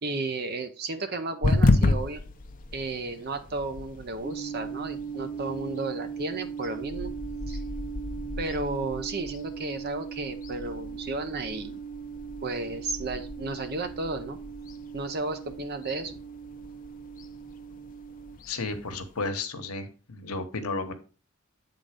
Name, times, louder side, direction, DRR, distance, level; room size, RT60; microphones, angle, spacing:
voice 1, 0.0-2.2 2.7-7.1 7.5-7.6 8.4-11.8 12.4-14.4 14.9-16.2, right 3 dB, 45° right, 8 dB, 0.7 m, -33 dB
sound 1, 1.4-19.3, left 2 dB, 40° left, 0.6 m, -33 dB
sound 2, 4.2-18.4, right 6 dB, ahead, 1.0 m, -39 dB
voice 2, 18.5-20.9, left 3 dB, 85° left, 6 dB, 1.1 m, -33 dB
8.5 x 3.9 x 5.0 m, 0.35 s
head